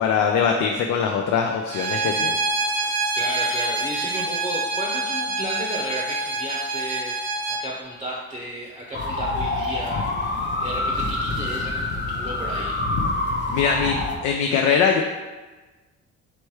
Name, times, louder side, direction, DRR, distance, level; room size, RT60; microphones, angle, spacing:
voice 1, 0.0-2.3 13.5-15.0, left 6 dB, 80° left, 2 dB, 0.4 m, -22 dB
Bowed string instrument, 1.7-7.6, right 2 dB, 65° right, 0.8 m, -26 dB
voice 2, 3.1-12.7, right 1 dB, 20° right, -3 dB, 0.7 m, -33 dB
sound 1, 8.9-14.1, left 2 dB, 35° left, 0.7 m, -26 dB
3.2 x 3.1 x 4.7 m, 1.3 s
cardioid pair, 90°, 30 cm